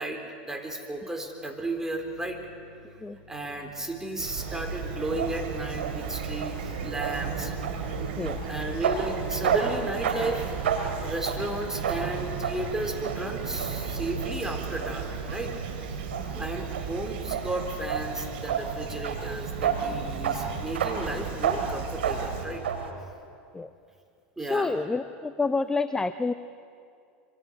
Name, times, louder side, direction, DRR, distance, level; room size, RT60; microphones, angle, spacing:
voice 1, 0.0-2.4 3.3-7.5 8.4-10.5 11.0-15.6 15.9-16.0 16.4-22.6 24.4-24.8, right 2 dB, 10° right, 3 dB, 3.7 m, -34 dB
sound 1, 0.9-9.5, right 1 dB, 40° right, 6.4 m, -52 dB
Fowl / Chirp tweet, 4.2-22.5, right 5 dB, 70° right, 3.7 m, -36 dB
sound 2, 5.0-22.9, right 7 dB, 90° right, 2.8 m, -33 dB
voice 2, 24.4-26.3, left 3 dB, 10° left, 11 dB, 0.7 m, -28 dB
26.0 x 25.0 x 6.4 m, 2.4 s
hypercardioid pair, 105°, 6 cm